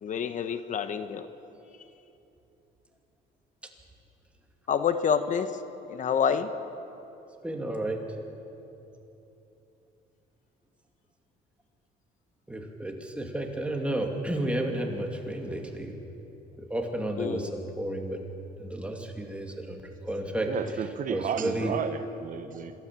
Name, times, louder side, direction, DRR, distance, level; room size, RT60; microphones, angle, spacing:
voice 1, 0.0-1.3 4.7-5.6 5.9-6.5 17.2-17.5, left 7 dB, 50° left, 10 dB, 1.0 m, -27 dB
voice 2, 7.4-8.0 12.5-16.0 16.6-18.2 18.6-20.5 21.1-21.9, right 1 dB, 5° right, 2 dB, 2.7 m, -32 dB
voice 3, 20.5-22.7, right 7 dB, 50° right, 9 dB, 1.2 m, -32 dB
26.5 x 13.0 x 7.6 m, 3.0 s
cardioid pair, 110°, 17 cm